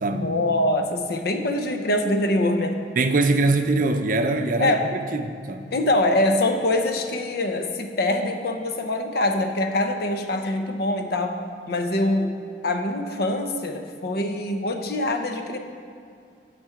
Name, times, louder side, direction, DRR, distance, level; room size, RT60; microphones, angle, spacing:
voice 1, 0.1-2.8 4.6-4.9 5.7-11.4 11.7-12.3 12.6-15.6, left 1 dB, 60° left, 5 dB, 0.7 m, -24 dB
voice 2, 3.0-4.7 5.1-5.6, right 3 dB, 50° right, 6 dB, 0.5 m, -22 dB
9.3 x 6.0 x 4.9 m, 2.4 s
head